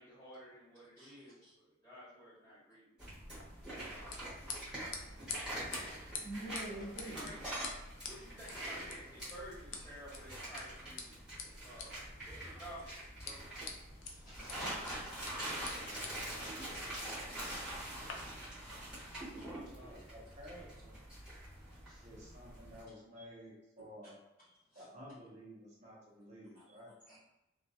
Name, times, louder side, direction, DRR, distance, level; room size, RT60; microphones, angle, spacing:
voice 1, 0.0-1.3 1.8-2.9 3.8-4.7 6.6-7.6 8.1-11.2 11.4-12.8 13.2-13.4 19.5-19.9, equal, 15° left, -12 dB, 1.1 m, -53 dB
sound 1, 3.0-22.8, right 1 dB, 5° right, 1.0 m, -45 dB
sound 2, 3.3-18.1, left 5 dB, 70° left, 0.4 m, -50 dB
voice 2, 6.2-7.3 14.0-15.1 16.2-16.4 21.9-22.0 24.7-24.8 27.1-27.2, right 1 dB, 40° left, -12 dB, 0.9 m, -47 dB
voice 3, 19.6-20.9 22.0-24.2 24.7-26.9, equal, 35° right, -5 dB, 0.6 m, -53 dB
2.3 x 2.2 x 2.7 m, 0.95 s
head